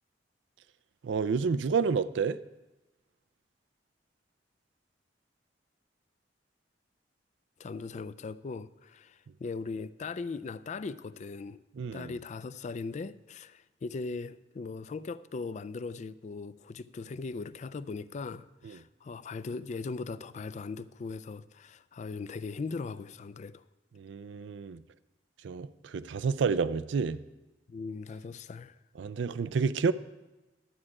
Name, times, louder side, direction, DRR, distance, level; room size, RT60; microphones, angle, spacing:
voice 1, 1.0-2.4 11.8-12.1 18.6-18.8 24.0-24.8 25.4-27.2 29.0-29.9, right 5 dB, 90° right, 0.4 m, -29 dB
voice 2, 7.6-11.6 11.9-23.6 27.7-28.8, left 4 dB, 40° left, 0.3 m, -39 dB
12.0 x 8.8 x 4.7 m
head